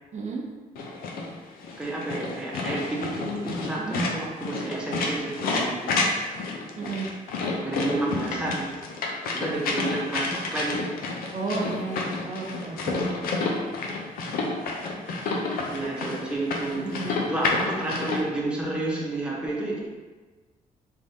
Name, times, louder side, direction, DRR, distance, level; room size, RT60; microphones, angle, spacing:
voice 1, 0.1-0.4 3.8-4.0 6.8-7.1 11.3-13.0 16.8-17.2, right 3 dB, 55° right, -2 dB, 0.6 m, -32 dB
sound 1, 0.8-18.2, left 3 dB, 90° left, 0.5 m, -30 dB
voice 2, 1.8-6.0 7.6-8.8 9.3-10.9 15.7-19.9, right 2 dB, 5° right, -4 dB, 0.8 m, -30 dB
3.5 x 3.2 x 2.7 m, 1.3 s
cardioid pair, 95°, 15 cm